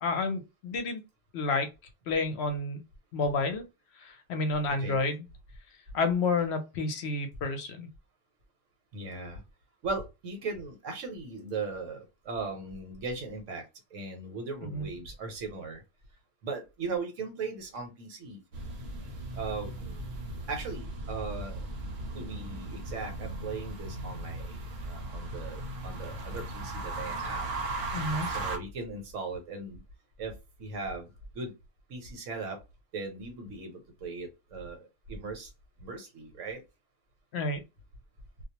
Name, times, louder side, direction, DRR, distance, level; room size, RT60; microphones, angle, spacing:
voice 1, 0.0-1.0 1.3-1.7 2.1-2.8 3.1-3.6 4.0-5.3 5.9-7.9 14.7-14.9 27.9-28.3 37.3-37.6, left 3 dB, 65° left, 0.8 m, -30 dB
voice 2, 8.9-9.4 9.8-13.6 13.9-15.8 16.4-18.4 19.3-20.1 20.5-21.7 22.1-27.5 28.3-29.8 30.2-30.3 30.6-31.1 31.3-31.5 31.9-32.6 32.9-35.5 35.8-36.6, right 4 dB, 80° right, 1.2 m, -38 dB
sound 1, 18.5-28.6, right 2 dB, 60° right, 0.8 m, -37 dB
2.4 x 2.0 x 2.7 m
omnidirectional pair, 1.3 m